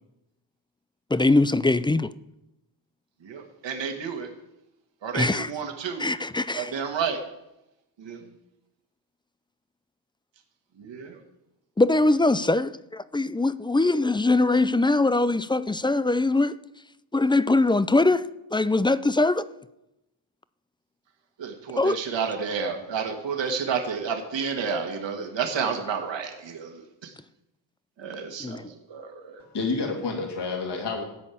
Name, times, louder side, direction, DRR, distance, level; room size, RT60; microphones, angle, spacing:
voice 1, 1.1-2.1 5.1-5.5 6.0-6.7 11.8-16.6 17.1-18.3 18.5-19.4 21.8-22.0 28.4-28.7, left 2 dB, 10° left, 0.4 m, -22 dB
voice 2, 3.2-4.3 5.0-6.1 6.6-7.2 8.0-8.3 10.8-11.2 21.4-27.1 28.0-29.4, right 6 dB, 65° right, 1.9 m, -31 dB
voice 3, 29.4-31.1, left 4 dB, 55° left, 2.8 m, -29 dB
13.0 x 5.4 x 8.5 m
cardioid pair, 75°, 48 cm